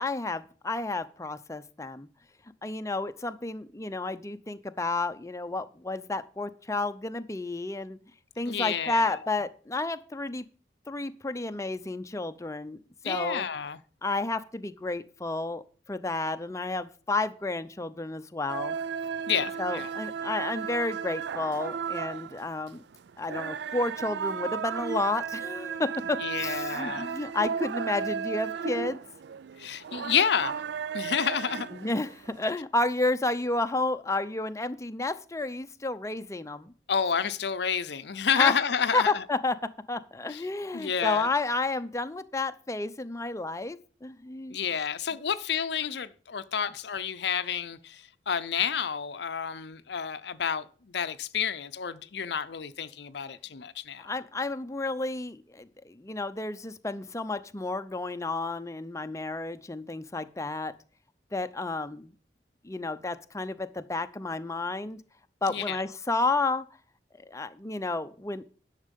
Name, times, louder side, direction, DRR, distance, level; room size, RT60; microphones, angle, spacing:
voice 1, 0.0-2.1 2.6-8.0 8.4-10.4 10.9-12.8 13.0-13.4 14.0-15.6 15.9-18.8 19.6-22.8 23.2-29.0 31.7-36.7 38.4-38.5 38.9-44.6 54.0-60.7 61.3-62.1 62.6-65.0 65.4-66.7 67.3-68.4, left 2 dB, 15° left, 0.6 m, -31 dB
voice 2, 8.4-9.2 13.0-13.8 19.3-19.9 26.2-27.1 29.6-30.6 30.9-31.7 36.9-39.2 40.3-40.4 40.7-41.3 44.5-54.1 65.5-65.8, left 7 dB, 65° left, 0.6 m, -30 dB
sound 1, 18.5-32.4, right 6 dB, 70° right, 0.4 m, -34 dB
11.0 x 6.6 x 5.3 m
head